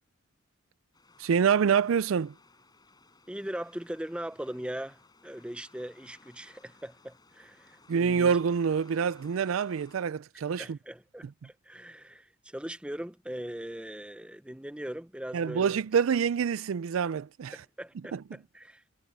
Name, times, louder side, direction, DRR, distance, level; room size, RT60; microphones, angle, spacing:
sound 1, 0.9-10.0, left 3 dB, 20° left, 7.2 m, -60 dB
voice 1, 1.2-2.3 7.9-10.8 15.3-17.5 18.1-18.2, right 7 dB, 85° right, 0.4 m, -26 dB
voice 2, 3.3-8.4 10.6-15.7 17.5-18.9, right 1 dB, 5° right, 0.6 m, -40 dB
head